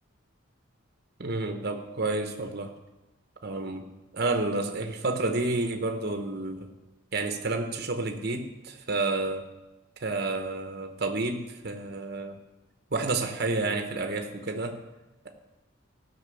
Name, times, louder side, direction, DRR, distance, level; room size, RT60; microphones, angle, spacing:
voice 1, 1.2-2.7 3.4-3.8 4.1-6.7 7.1-9.5 10.0-12.4 12.9-14.8 15.2-15.3, right 2 dB, 50° right, 5 dB, 1.0 m, -30 dB
15.5 x 5.9 x 6.9 m, 1.0 s
head